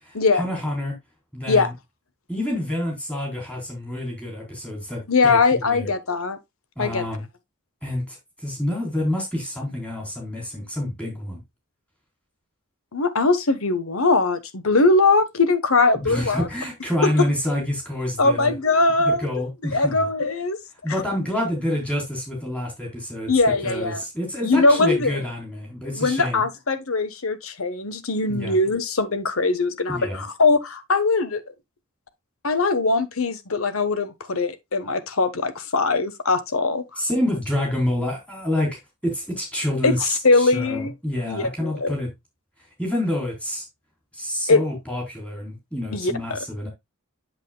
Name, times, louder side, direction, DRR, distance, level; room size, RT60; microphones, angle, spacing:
voice 1, 0.0-1.0 1.3-1.7 2.3-5.9 6.8-7.2 7.8-11.4 15.9-18.5 19.0-20.1 20.8-23.3 23.6-26.4 28.3-28.6 29.9-30.2 37.0-42.1 42.8-43.7 44.1-46.7, left 1 dB, 5° left, 4.1 m, -28 dB
voice 2, 5.1-6.4 6.8-7.0 12.9-16.5 17.0-17.1 18.2-19.3 19.6-20.6 23.3-24.0 24.4-25.2 26.0-31.4 32.4-37.0 39.8-40.9 41.3-41.9 44.5-44.6 45.9-46.4, left 3 dB, 70° left, 1.2 m, -21 dB
8.3 x 7.4 x 2.3 m
head